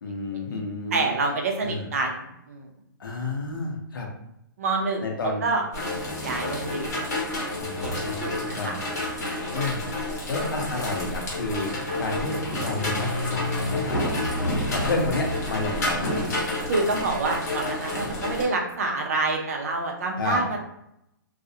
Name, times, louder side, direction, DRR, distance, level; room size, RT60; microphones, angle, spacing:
voice 1, 0.0-1.1 1.6-1.8 3.0-4.1 5.0-5.5 7.6-8.7 9.5-9.9 10.3-11.7 12.0-14.1 14.4-16.4 20.2-20.4, left 3 dB, 70° left, 1 dB, 0.7 m, -30 dB
voice 2, 0.9-2.7 4.6-5.6 6.2-6.9 7.4-7.5 7.8-7.9 8.2-8.7 9.2-9.5 16.6-20.6, right 3 dB, 40° right, 1 dB, 0.5 m, -27 dB
sound 1, 5.7-18.4, left 1 dB, 45° left, 0.9 m, -29 dB
2.4 x 2.0 x 2.7 m, 0.81 s
hypercardioid pair, 170°, 12 cm